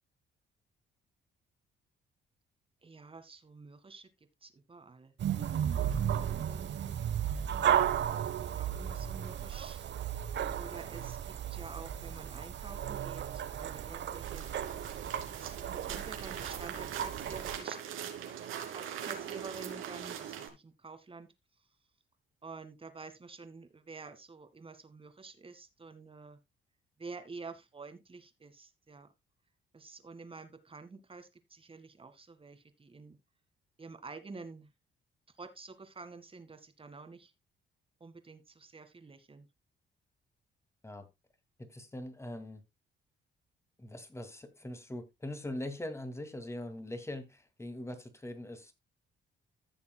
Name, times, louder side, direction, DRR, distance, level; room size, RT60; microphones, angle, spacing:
voice 1, 2.8-4.1 4.4-5.1 5.7-7.0 8.4-9.9 10.6-14.8 15.2-18.1 18.4-21.3 22.4-26.4 27.0-29.1 29.7-33.2 33.8-34.7 35.4-37.3 38.0-39.5, right 4 dB, 25° right, 1.9 m, -49 dB
sound 1, 5.2-17.6, right 9 dB, 65° right, 1.1 m, -34 dB
sound 2, 14.2-20.5, right 9 dB, 85° right, 2.7 m, -41 dB
voice 2, 41.6-42.6 43.8-48.7, left 1 dB, 15° left, 2.3 m, -42 dB
15.0 x 6.9 x 2.3 m
cardioid pair, 90°, 20 cm